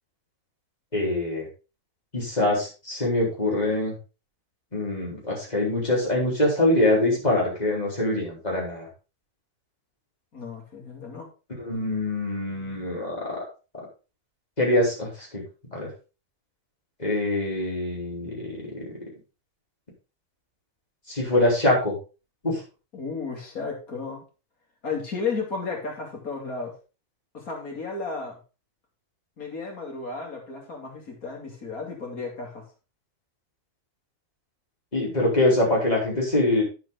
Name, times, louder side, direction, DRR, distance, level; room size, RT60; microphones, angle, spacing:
voice 1, 0.9-1.5 2.1-3.9 4.7-8.9 11.6-13.4 14.6-15.1 15.3-15.4 15.7-15.9 17.0-18.8 21.1-21.9 22.4-22.6 34.9-36.6, left 1 dB, 25° left, -3 dB, 4.0 m, -24 dB
voice 2, 10.3-11.3 22.9-24.2 24.8-26.7 27.3-28.4 29.4-32.6, left 4 dB, 70° left, 1 dB, 3.0 m, -33 dB
9.3 x 7.3 x 3.8 m, 0.32 s
omnidirectional pair, 1.6 m